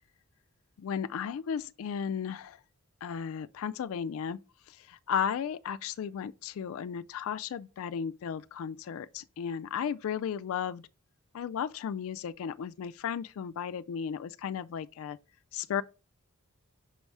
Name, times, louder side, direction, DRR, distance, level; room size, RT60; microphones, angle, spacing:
voice 1, 0.8-2.6 3.0-4.4 4.7-10.8 11.3-15.2 15.5-15.8, left 7 dB, 65° left, 0.3 m, -35 dB
6.1 x 4.6 x 5.4 m
head